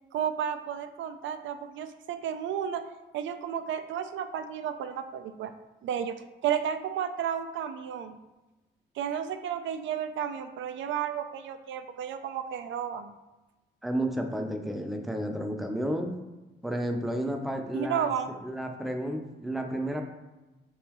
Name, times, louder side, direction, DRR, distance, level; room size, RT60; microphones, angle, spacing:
voice 1, 0.1-2.8 3.1-5.5 5.8-6.2 6.4-8.2 9.0-13.1 17.7-18.3, right 8 dB, 75° right, 9 dB, 0.4 m, -32 dB
voice 2, 13.8-16.1 16.6-18.1 18.4-20.0, right 1 dB, ahead, 3 dB, 0.5 m, -31 dB
4.0 x 3.7 x 3.0 m, 1.1 s
cardioid pair, 90°, 20 cm